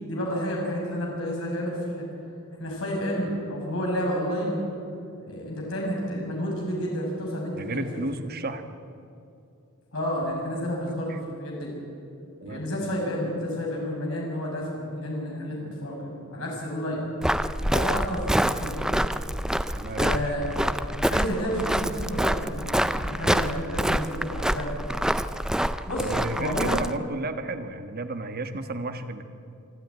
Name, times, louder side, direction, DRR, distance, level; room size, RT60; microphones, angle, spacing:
voice 1, 0.0-2.1 2.6-4.6 5.2-7.9 9.9-11.7 12.4-17.0 17.6-19.0 19.8-24.7 25.9-26.8, equal, 65° left, -2 dB, 6.2 m, -30 dB
voice 2, 7.5-8.6 11.1-11.2 12.4-12.6 17.8-17.9 19.7-20.2 26.0-29.2, right 2 dB, 45° right, 8 dB, 1.3 m, -33 dB
Walk footsteps, 17.2-27.0, equal, 5° right, 0.4 m, -26 dB
25.0 x 13.0 x 9.5 m, 2.6 s
head